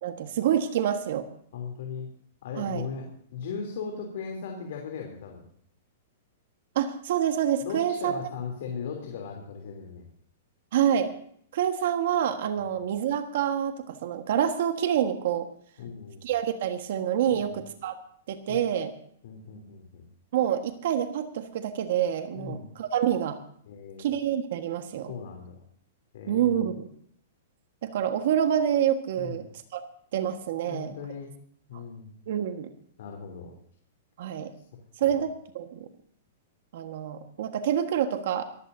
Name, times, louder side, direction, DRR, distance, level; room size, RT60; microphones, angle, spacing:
voice 1, 0.0-1.3 2.6-2.9 6.7-8.1 10.7-11.1 11.5-15.5 16.2-18.0 18.3-18.9 20.3-23.4 24.0-25.1 26.3-26.9 27.8-29.4 29.7-29.8 30.1-30.9 31.7-31.8 32.3-32.7 34.2-34.5 35.0-35.9 36.7-38.4, right 9 dB, 60° right, 7 dB, 1.5 m, -27 dB
voice 2, 1.5-2.1 2.4-5.5 7.6-10.1 15.8-16.3 17.3-17.6 18.5-18.6 19.2-20.1 22.3-22.7 23.7-24.1 25.1-25.6 26.1-26.5 29.2-29.4 30.6-31.3 31.7-32.2 33.0-33.6 35.0-35.1, left 6 dB, 60° left, 1 dB, 3.2 m, -38 dB
23.5 x 15.0 x 2.7 m, 0.62 s
hypercardioid pair, 160°, 0 cm